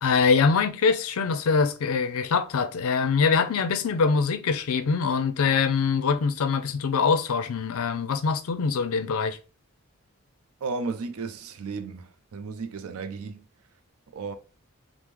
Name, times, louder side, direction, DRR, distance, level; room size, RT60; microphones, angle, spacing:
voice 1, 0.0-9.4, left 5 dB, 80° left, 0.4 m, -23 dB
voice 2, 10.6-13.5 14.1-14.3, right 4 dB, 80° right, 0.4 m, -34 dB
3.5 x 2.0 x 3.0 m
head